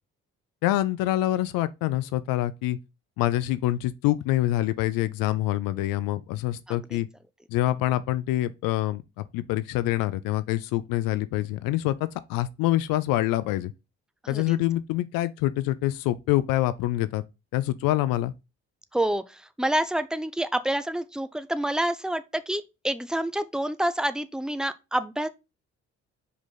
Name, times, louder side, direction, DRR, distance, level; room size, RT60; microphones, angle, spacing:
voice 1, 0.6-2.8 3.2-7.1 7.5-13.7 14.3-17.2 17.5-18.3, left 15 dB, 75° left, 0.5 m, -26 dB
voice 2, 6.7-7.0 14.2-14.6 18.9-25.3, right 1 dB, ahead, 0.7 m, -28 dB
5.0 x 4.0 x 5.5 m
hypercardioid pair, 45°, 35 cm